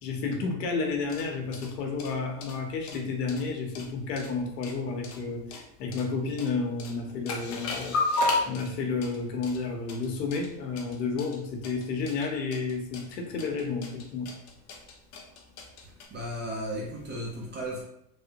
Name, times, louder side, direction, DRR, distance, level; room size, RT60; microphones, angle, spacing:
voice 1, 0.0-14.3, left 4 dB, 90° left, 2 dB, 0.8 m, -31 dB
sound 1, 0.9-16.0, left 2 dB, 35° left, 0.5 m, -35 dB
voice 2, 16.1-17.8, equal, 25° right, -2 dB, 0.5 m, -34 dB
3.2 x 2.1 x 2.7 m, 0.78 s
supercardioid pair, 120°, 48 cm